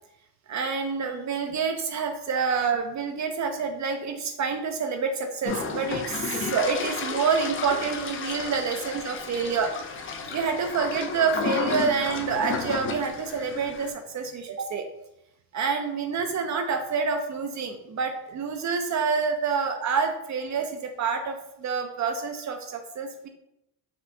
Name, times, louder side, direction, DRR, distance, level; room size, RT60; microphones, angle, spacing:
voice 1, 0.5-14.9 15.5-23.3, right 5 dB, 45° right, 5 dB, 0.4 m, -28 dB
sound 1, 5.4-13.9, left 5 dB, 30° left, 0.4 m, -32 dB
4.3 x 2.1 x 2.6 m, 0.82 s
cardioid pair, 100°, 43 cm